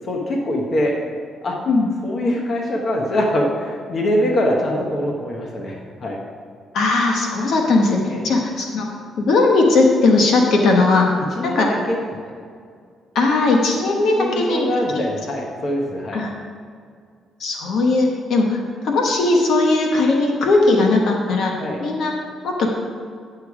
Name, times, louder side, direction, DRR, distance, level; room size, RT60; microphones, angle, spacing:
voice 1, 0.0-0.9 1.4-1.6 2.0-5.7 6.0-6.2 8.1-8.3 11.4-12.0 14.2-16.2 21.6-21.8, equal, 50° left, -1 dB, 1.3 m, -23 dB
voice 2, 6.7-8.9 9.2-11.1 11.4-11.7 13.1-14.7 14.9-15.0 16.1-16.3 17.4-21.5 21.8-22.1 22.4-22.7, left 3 dB, 70° left, 1 dB, 1.1 m, -18 dB
9.9 x 6.9 x 4.9 m, 2.1 s
cardioid pair, 90°, 0 cm